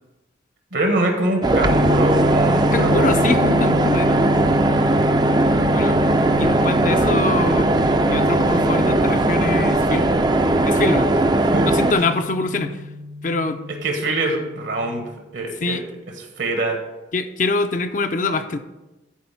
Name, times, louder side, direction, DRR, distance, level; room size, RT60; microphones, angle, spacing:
voice 1, 0.7-3.4 6.9-7.1 11.3-11.7 13.8-15.0 15.3-15.8 16.2-16.8, right 2 dB, 75° right, 3 dB, 1.4 m, -24 dB
sound 1, 1.4-11.9, right 2 dB, 20° right, 0.4 m, -18 dB
sound 2, 1.6-15.1, left 2 dB, 80° left, 1.2 m, -28 dB
voice 2, 2.7-4.6 5.7-6.0 6.4-7.7 8.0-10.1 10.6-11.1 11.6-12.8 13.2-13.6 15.6-15.8 17.1-18.6, left 3 dB, 45° left, 8 dB, 0.5 m, -24 dB
10.5 x 4.4 x 5.7 m, 1.0 s
head